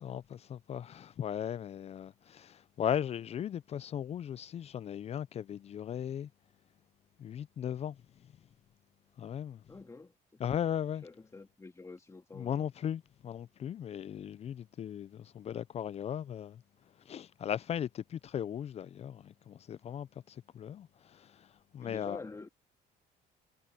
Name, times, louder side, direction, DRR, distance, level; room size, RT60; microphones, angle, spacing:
voice 1, 0.0-6.3 7.2-8.0 9.2-9.6 10.4-11.0 12.4-16.6 17.1-21.5 21.7-22.2, left 9 dB, 40° left, 0.4 m, -37 dB
voice 2, 9.7-10.4 11.0-12.7 21.8-22.5, left 3 dB, 20° left, 2.7 m, -48 dB
cardioid pair, 110°, 17 cm